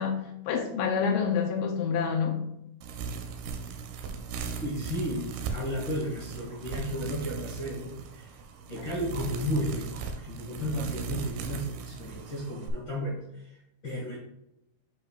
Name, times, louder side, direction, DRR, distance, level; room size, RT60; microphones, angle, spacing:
voice 1, 0.0-2.5, left 6 dB, 80° left, 4 dB, 2.1 m, -28 dB
sound 1, 2.8-12.7, right 6 dB, 85° right, 2.6 m, -38 dB
voice 2, 4.6-8.3 8.7-14.2, equal, 60° left, -5 dB, 1.3 m, -34 dB
8.8 x 4.9 x 2.4 m, 0.83 s
omnidirectional pair, 4.5 m